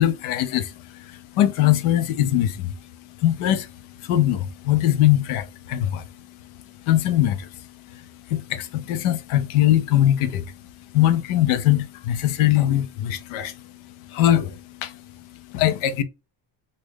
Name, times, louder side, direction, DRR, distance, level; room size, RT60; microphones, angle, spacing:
voice 1, 0.0-16.0, left 12 dB, 90° left, 0.7 m, -22 dB
3.1 x 2.6 x 3.3 m
cardioid pair, 145°, 48 cm